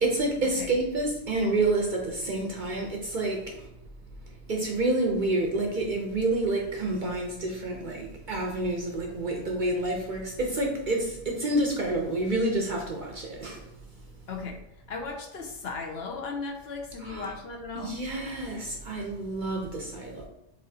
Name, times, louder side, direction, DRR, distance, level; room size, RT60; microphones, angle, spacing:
voice 1, 0.0-3.7 4.5-13.6 17.0-17.4 17.7-20.3, right 2 dB, 50° right, 0.6 m, -28 dB
voice 2, 14.3-14.6 14.9-18.0, left 4 dB, 60° left, 0.8 m, -36 dB
4.2 x 3.7 x 2.7 m
omnidirectional pair, 1.3 m